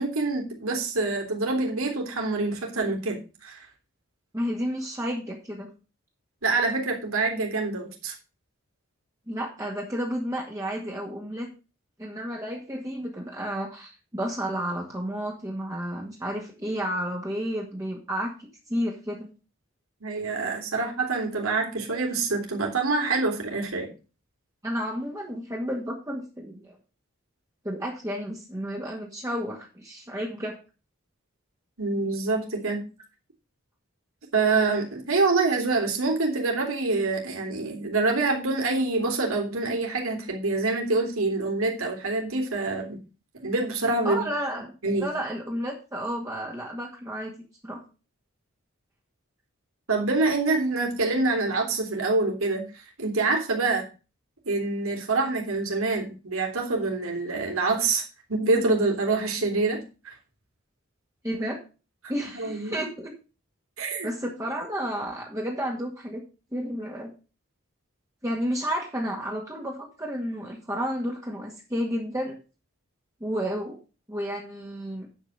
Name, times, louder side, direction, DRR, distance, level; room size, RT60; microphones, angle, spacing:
voice 1, 0.0-3.6 6.4-8.1 20.0-23.9 31.8-32.9 34.3-43.0 43.4-44.2 44.8-45.1 49.9-52.7 53.0-53.8 54.4-58.0 58.3-60.1 62.3-62.8 63.8-64.1, right 3 dB, 90° right, 1 dB, 3.5 m, -26 dB
voice 2, 4.3-5.7 9.3-11.5 12.0-19.3 24.6-26.8 27.6-30.6 44.0-44.7 45.0-47.3 47.6-47.8 61.2-61.6 62.1-63.1 64.0-66.2 66.5-67.1 68.2-72.4 73.2-73.8 74.1-75.1, equal, 15° right, -2 dB, 2.0 m, -31 dB
10.0 x 5.5 x 6.6 m, 0.33 s
head